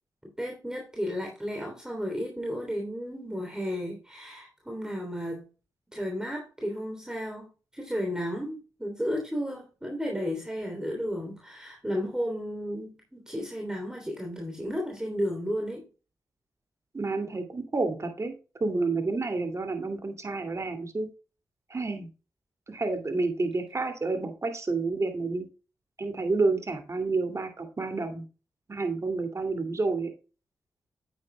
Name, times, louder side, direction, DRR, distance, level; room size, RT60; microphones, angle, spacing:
voice 1, 0.4-5.5 5.9-15.8, equal, 10° right, 1 dB, 3.1 m, -33 dB
voice 2, 16.9-18.3 18.6-21.1 21.7-22.1 22.7-25.5 26.0-28.2 28.7-30.1, right 3 dB, 40° right, 6 dB, 2.4 m, -29 dB
9.1 x 8.9 x 2.2 m, 0.33 s
supercardioid pair, 50°, 8 cm